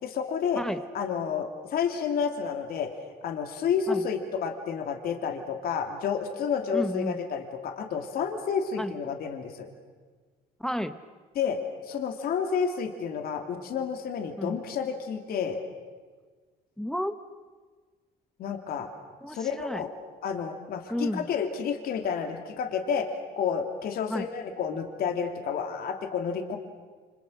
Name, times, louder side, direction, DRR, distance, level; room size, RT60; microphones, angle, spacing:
voice 1, 0.0-0.6 0.9-2.9 3.2-9.7 11.3-11.6 11.9-15.6 18.4-18.9 19.3-19.9 20.2-23.1 23.4-26.6, left 6 dB, 65° left, 4 dB, 2.9 m, -30 dB
voice 2, 6.7-7.2 8.8-8.9 10.6-11.0 14.4-14.6 16.8-17.1 19.2-19.8 20.9-21.3 24.1-24.3, equal, 5° left, 10 dB, 1.0 m, -31 dB
29.5 x 26.0 x 6.5 m, 1.4 s
cardioid pair, 110°, 17 cm